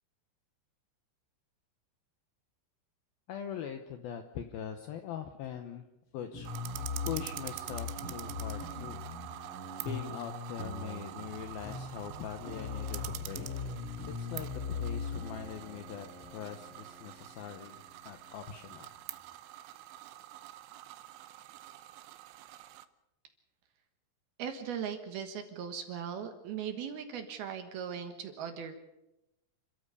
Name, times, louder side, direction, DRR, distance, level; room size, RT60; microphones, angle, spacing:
voice 1, 3.3-5.9 6.1-6.5 7.0-9.0 9.4-9.5 9.8-13.5 14.2-18.9, left 8 dB, 75° left, 7 dB, 2.2 m, -42 dB
sound 1, 6.3-19.2, left 4 dB, 35° left, 3.1 m, -41 dB
sound 2, 6.5-22.9, right 14 dB, 80° right, 3.2 m, -46 dB
voice 2, 24.4-28.8, right 8 dB, 65° right, 7 dB, 2.9 m, -39 dB
29.5 x 13.0 x 6.8 m, 0.91 s
omnidirectional pair, 5.5 m